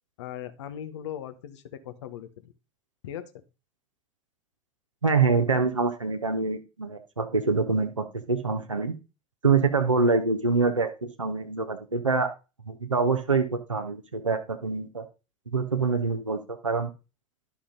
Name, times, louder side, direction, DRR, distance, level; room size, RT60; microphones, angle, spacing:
voice 1, 0.2-2.5 3.0-3.4, left 10 dB, 65° left, 10 dB, 1.1 m, -39 dB
voice 2, 5.0-9.0 9.4-12.3 12.7-15.0 15.5-16.9, right 4 dB, 85° right, 4 dB, 0.8 m, -25 dB
11.5 x 6.1 x 3.8 m, 0.30 s
figure-of-eight pair, 70°, 16 cm